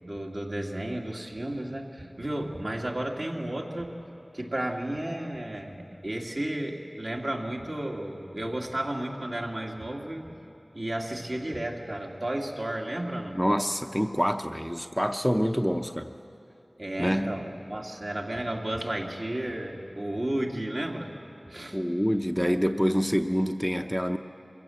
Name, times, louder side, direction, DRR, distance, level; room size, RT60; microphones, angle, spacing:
voice 1, 0.0-4.0 4.3-10.3 10.7-13.4 16.8-21.1 21.5-21.8, right 1 dB, 60° right, -1 dB, 2.1 m, -33 dB
voice 2, 13.3-16.1 17.0-17.4 21.7-24.2, equal, ahead, 6 dB, 0.6 m, -26 dB
24.0 x 15.5 x 7.7 m, 2.9 s
wide cardioid pair, 45°, 0 cm